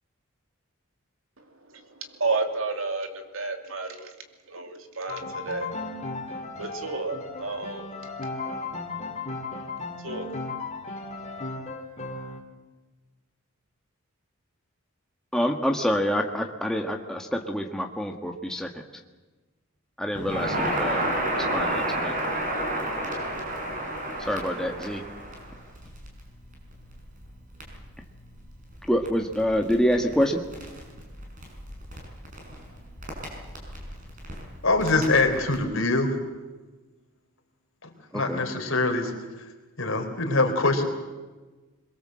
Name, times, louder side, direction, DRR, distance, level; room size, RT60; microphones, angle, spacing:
voice 1, 1.4-4.1 4.5-5.7 6.6-7.9 10.0-10.3, right 3 dB, 65° right, 6 dB, 2.6 m, -31 dB
Piano, 5.1-12.4, left 3 dB, 30° left, 2.6 m, -35 dB
voice 2, 15.3-18.7 20.0-21.1 21.3-22.2 24.3-25.0 28.9-30.4 38.1-38.4, equal, 5° left, 2 dB, 1.4 m, -26 dB
Crackle, 20.1-35.6, right 1 dB, 40° right, 5.9 m, -32 dB
voice 3, 34.6-36.1 38.1-39.1 39.8-40.8, left 3 dB, 65° left, 4 dB, 3.8 m, -23 dB
22.5 x 22.0 x 7.7 m, 1.2 s
head